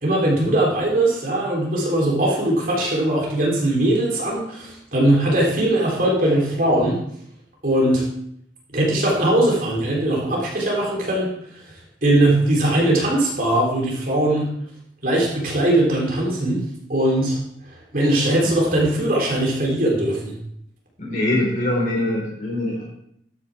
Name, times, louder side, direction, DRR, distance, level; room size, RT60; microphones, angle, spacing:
voice 1, 0.0-7.0 7.6-8.0 8.7-11.3 12.0-14.5 15.0-16.6 16.9-17.4 17.9-20.4, right 1 dB, 50° right, -3 dB, 3.6 m, -20 dB
voice 2, 21.0-22.8, left 1 dB, 45° left, -3 dB, 4.7 m, -23 dB
12.5 x 9.8 x 3.6 m, 0.70 s
head